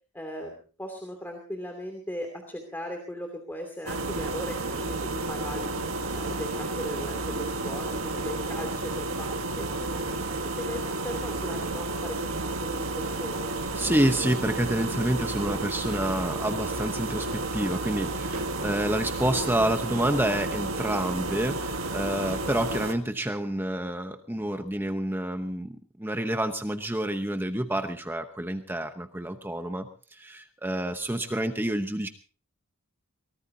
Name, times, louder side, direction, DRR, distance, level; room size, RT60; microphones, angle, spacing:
voice 1, 0.1-5.8 6.1-9.9 10.4-12.3 12.6-13.5, left 1 dB, 10° left, 3 dB, 2.7 m, -38 dB
sound 1, 3.9-22.9, right 2 dB, 75° right, 1.6 m, -31 dB
voice 2, 13.7-25.7 26.0-32.1, right 1 dB, 10° right, 7 dB, 0.9 m, -28 dB
23.0 x 19.0 x 2.8 m, 0.36 s
head